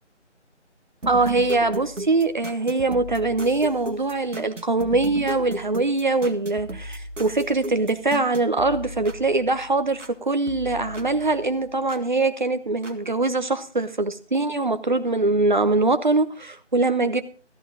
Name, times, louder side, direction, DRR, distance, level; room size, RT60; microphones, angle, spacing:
sound 1, 1.0-10.2 10.5-12.1 12.8-12.9, right 1 dB, 80° right, 1.7 m, -36 dB
voice 1, 1.1-17.2, right 3 dB, 40° right, 10 dB, 0.9 m, -23 dB
14.0 x 13.5 x 3.8 m, 0.37 s
figure-of-eight pair, 160°, 36 cm